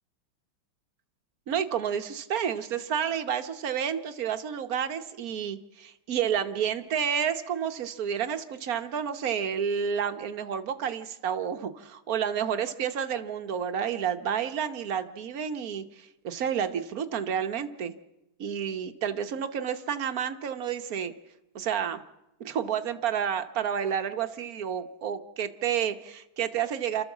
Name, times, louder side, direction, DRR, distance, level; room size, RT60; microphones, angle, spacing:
voice 1, 1.5-17.9 18.4-21.1 21.5-22.0 22.4-27.0, right 8 dB, 55° right, 9 dB, 1.1 m, -30 dB
29.5 x 13.5 x 7.2 m, 0.95 s
omnidirectional pair, 2.4 m